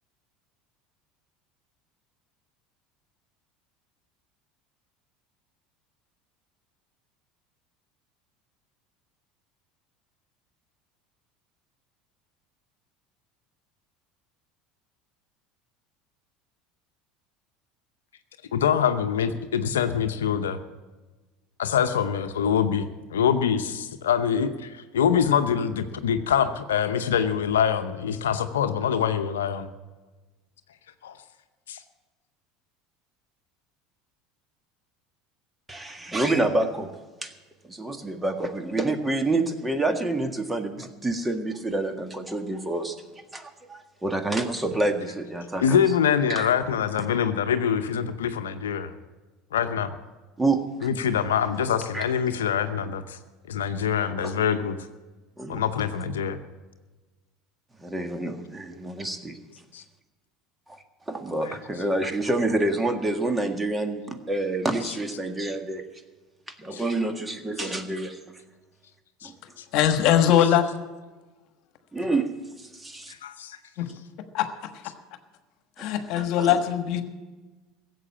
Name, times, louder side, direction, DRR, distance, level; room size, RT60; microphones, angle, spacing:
voice 1, 18.5-20.6 21.6-29.7 31.0-31.1 31.7-31.8 45.6-48.9 49.5-49.9 50.8-53.2 53.5-54.8 55.5-56.4 59.7-59.8 61.4-61.6 64.8-64.9 66.7-66.8 69.2-69.3 69.6-69.7 73.2-73.6, left 8 dB, 85° left, 9 dB, 0.7 m, -24 dB
voice 2, 35.7-36.9 37.2-37.3 37.7-42.9 43.3-45.8 46.3-46.5 50.4-50.6 51.9-52.0 54.2-54.3 55.4-55.6 57.8-59.4 60.7-60.8 61.1-65.8 66.6-68.2 69.2-69.3 71.9-72.3 72.9-73.0 75.8-75.9 76.1-76.6, right 2 dB, 15° right, 7 dB, 1.7 m, -27 dB
voice 3, 69.7-70.6 73.8-73.9 74.3-74.5 75.8-77.0, left 10 dB, 60° left, 9 dB, 1.3 m, -21 dB
16.0 x 7.7 x 8.7 m, 1.2 s
hypercardioid pair, 80°, 0 cm